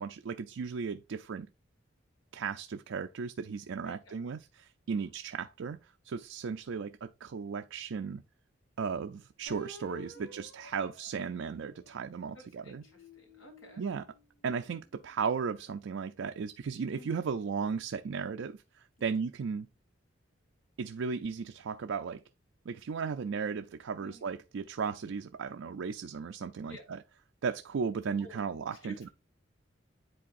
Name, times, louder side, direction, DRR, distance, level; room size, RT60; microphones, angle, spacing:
voice 1, 0.0-1.5 2.3-5.8 6.0-8.2 8.8-12.8 13.8-14.1 14.4-19.7 20.8-22.2 22.7-27.0 27.4-29.1, right 5 dB, 75° right, 0.4 m, -36 dB
voice 2, 3.8-4.1 4.9-5.1 10.1-10.4 12.3-13.8 16.9-17.2 19.0-19.1 24.0-24.2 26.6-26.8 28.2-28.4 28.8-29.1, right 1 dB, 90° left, 2.8 m, -51 dB
sound 1, 9.5-12.2 12.7-15.2, left 1 dB, 55° left, 2.1 m, -53 dB
10.0 x 3.9 x 2.5 m
head